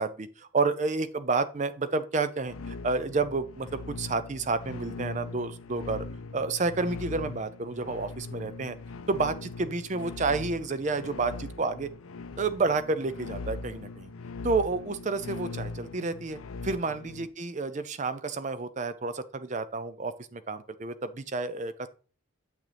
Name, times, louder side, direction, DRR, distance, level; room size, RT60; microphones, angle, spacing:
voice 1, 0.0-6.1 6.3-8.8 9.1-11.9 12.4-14.1 14.4-21.9, right 3 dB, 35° right, 13 dB, 0.5 m, -30 dB
sound 1, 2.4-17.3, left 3 dB, 85° left, 0.5 m, -40 dB
7.5 x 6.2 x 3.4 m, 0.38 s
head